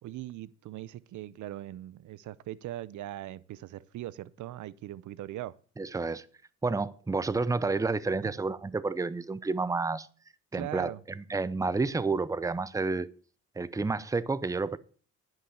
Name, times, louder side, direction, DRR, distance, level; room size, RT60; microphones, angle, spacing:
voice 1, 0.0-5.6 8.2-8.3 10.5-11.0, right 14 dB, 75° right, 0.7 m, -40 dB
voice 2, 5.8-6.3 6.6-10.1 10.5-13.1 13.6-14.8, right 3 dB, 10° right, 0.6 m, -30 dB
10.5 x 5.8 x 7.2 m
cardioid pair, 90°, 30 cm